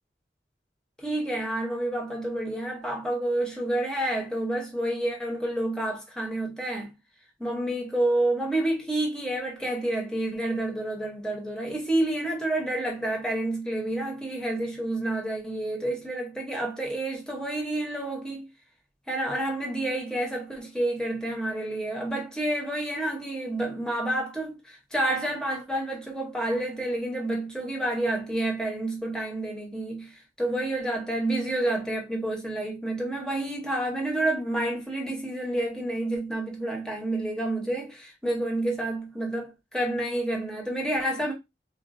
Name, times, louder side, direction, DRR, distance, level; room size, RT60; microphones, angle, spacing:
voice 1, 1.0-6.9 7.4-18.5 19.1-41.3, right 1 dB, 5° left, 0.7 m, -29 dB
3.9 x 2.1 x 2.5 m
head